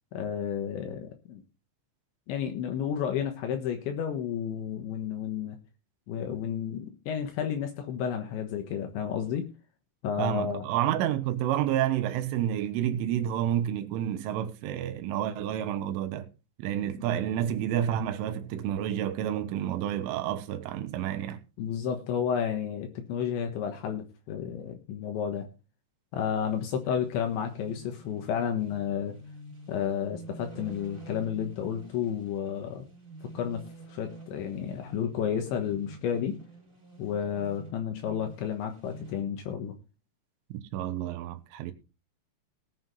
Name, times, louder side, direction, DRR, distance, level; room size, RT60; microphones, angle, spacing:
voice 1, 0.1-1.4 2.3-5.6 6.1-9.5 10.0-10.7 17.0-17.1 21.6-25.5 26.1-29.2 29.7-32.9 33.4-33.6 33.9-36.4 37.0-39.7, left 8 dB, 75° left, 3.5 m, -31 dB
voice 2, 10.2-16.3 16.6-21.4 40.5-41.7, right 11 dB, 85° right, 3.7 m, -29 dB
sound 1, 26.1-39.2, right 1 dB, 20° right, 4.6 m, -48 dB
18.5 x 7.4 x 4.0 m
omnidirectional pair, 5.6 m